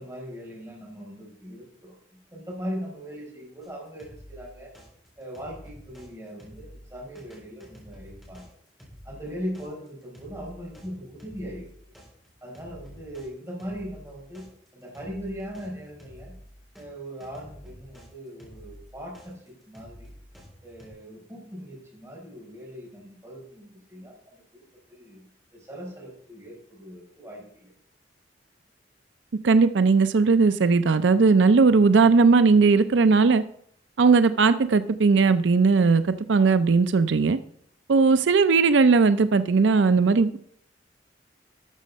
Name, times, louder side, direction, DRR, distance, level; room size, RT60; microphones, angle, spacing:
voice 1, 0.0-1.9 2.3-4.7 5.2-8.5 9.0-11.7 12.4-14.4 14.7-16.3 16.8-20.1 20.6-24.6 24.9-25.2 25.5-27.7, equal, 15° right, -2 dB, 4.8 m, -39 dB
sound 1, 3.6-6.1 6.4-16.8 17.2-20.9, equal, ahead, 3.9 m, -48 dB
voice 2, 29.4-33.4 34.0-36.0 36.3-37.4 37.9-40.4, right 4 dB, 90° right, 12 dB, 0.5 m, -18 dB
12.5 x 6.5 x 5.3 m, 0.65 s
head